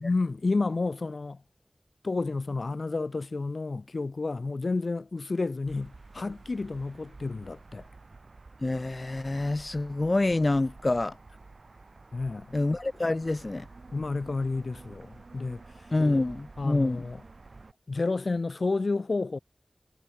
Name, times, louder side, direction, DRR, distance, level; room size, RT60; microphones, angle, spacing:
voice 1, 0.0-1.4 2.0-7.9 12.1-12.6 13.9-15.9 16.6-17.2 17.9-19.4, left 3 dB, 85° left, 1.1 m, -30 dB
sound 1, 5.7-17.7, right 3 dB, 80° right, 4.4 m, -50 dB
voice 2, 8.6-11.2 12.5-13.7 15.9-17.0, left 2 dB, 50° left, 0.5 m, -27 dB
wide cardioid pair, 65°, 0 cm